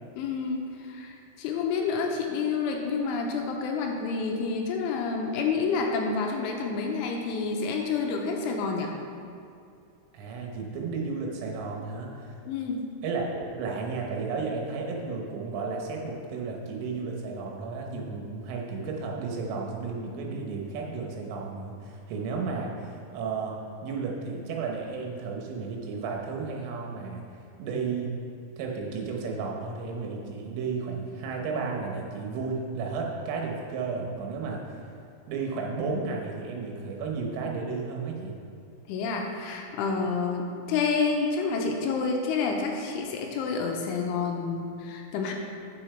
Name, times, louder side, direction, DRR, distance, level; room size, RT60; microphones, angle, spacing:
voice 1, 0.2-8.9 12.5-12.9 38.9-45.3, left 4 dB, 80° left, 1 dB, 3.0 m, -29 dB
voice 2, 10.1-12.4 13.0-27.2 27.6-28.1 28.6-34.8 35.3-38.4, right 4 dB, 80° right, 0 dB, 3.6 m, -33 dB
9.4 x 7.2 x 4.4 m, 2.5 s
omnidirectional pair, 5.8 m